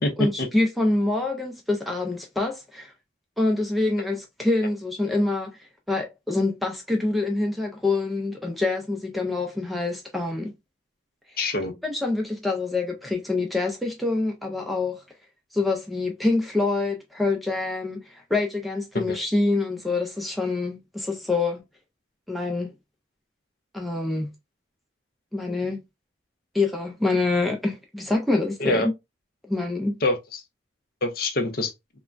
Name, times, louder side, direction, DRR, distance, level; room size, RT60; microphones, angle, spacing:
voice 1, 0.2-2.9 3.4-10.5 11.8-15.0 15.5-21.6 22.3-22.7 23.7-24.3 25.3-25.8 26.5-28.9 29.5-30.0, left 2 dB, ahead, 0.4 m, -26 dB
voice 2, 11.4-11.7 18.9-19.2 28.6-28.9 30.0-30.4 31.0-31.7, left 2 dB, 50° left, 0.6 m, -25 dB
3.3 x 2.1 x 2.4 m
head